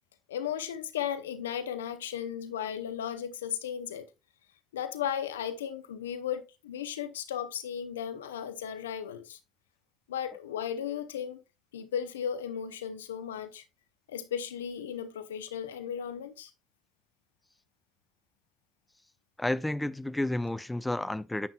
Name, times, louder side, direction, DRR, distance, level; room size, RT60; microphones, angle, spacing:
voice 1, 0.3-4.1 4.7-9.4 10.1-11.4 11.7-13.6 14.1-16.5, left 9 dB, 80° left, 0.7 m, -35 dB
voice 2, 19.4-21.5, left 1 dB, 10° left, 0.5 m, -31 dB
9.2 x 7.3 x 2.3 m
figure-of-eight pair, 55°, 0 cm